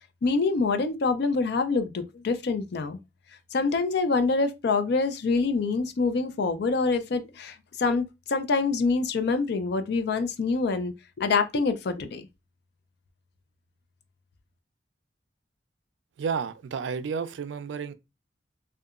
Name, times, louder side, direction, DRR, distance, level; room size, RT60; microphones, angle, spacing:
voice 1, 0.2-3.0 3.5-12.3, left 4 dB, 65° left, 0.4 m, -26 dB
voice 2, 16.2-17.9, right 6 dB, 85° right, 0.3 m, -31 dB
2.8 x 2.2 x 2.3 m
head